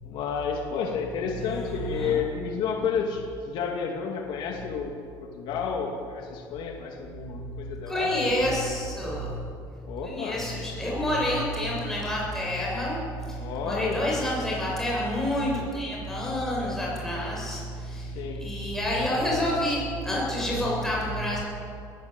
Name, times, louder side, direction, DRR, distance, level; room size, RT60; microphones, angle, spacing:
voice 1, 0.0-4.9 5.2-8.4 9.9-10.4 13.4-14.2 16.7-17.0 18.1-18.4, left 6 dB, 60° left, 1 dB, 2.5 m, -31 dB
voice 2, 1.3-2.2 7.9-9.4 10.0-21.4, left 1 dB, 5° left, -5 dB, 7.8 m, -28 dB
20.0 x 16.5 x 9.1 m, 2.5 s
cardioid pair, 150°, 9 cm